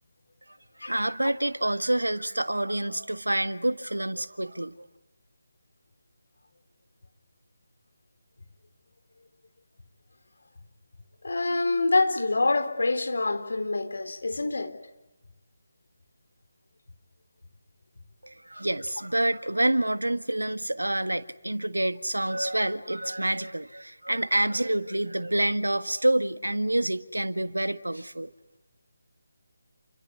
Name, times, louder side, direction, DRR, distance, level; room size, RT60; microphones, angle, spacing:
voice 1, 0.8-4.9 18.2-28.3, right 1 dB, 80° right, 1.6 m, -27 dB
voice 2, 11.2-14.7, left 3 dB, 60° left, 3.7 m, -26 dB
29.5 x 24.5 x 8.3 m
figure-of-eight pair, 150°, 0 cm